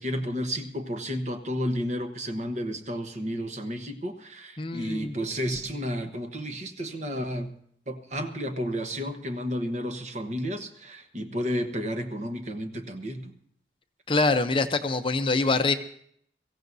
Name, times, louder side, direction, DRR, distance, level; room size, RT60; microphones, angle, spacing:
voice 1, 0.0-7.5 7.9-13.3, equal, 40° right, 7 dB, 1.1 m, -32 dB
voice 2, 4.6-5.2 14.1-15.7, left 3 dB, 30° left, 8 dB, 0.6 m, -24 dB
23.5 x 15.0 x 2.7 m, 0.65 s
head